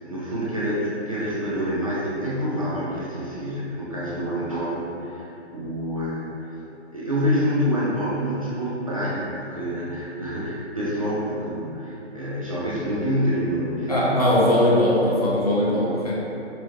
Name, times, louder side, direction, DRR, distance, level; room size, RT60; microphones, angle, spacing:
voice 1, 0.0-6.4 6.9-14.2, equal, 30° right, -9 dB, 0.5 m, -27 dB
voice 2, 13.9-16.1, left 1 dB, 35° left, -7 dB, 0.7 m, -20 dB
4.9 x 3.0 x 2.7 m, 2.8 s
figure-of-eight pair, 155°, 36 cm